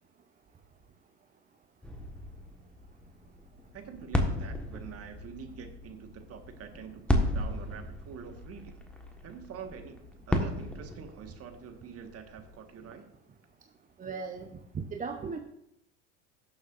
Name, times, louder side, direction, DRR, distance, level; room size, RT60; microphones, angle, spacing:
sound 1, 1.8-12.9, left 1 dB, 5° left, 1.4 m, -35 dB
voice 1, 3.7-8.8 9.2-10.0 10.3-13.0, right 7 dB, 40° right, 6 dB, 1.6 m, -46 dB
voice 2, 14.0-15.4, right 5 dB, 20° right, 5 dB, 0.8 m, -37 dB
17.5 x 7.1 x 2.6 m, 0.79 s
hypercardioid pair, 80°, 37 cm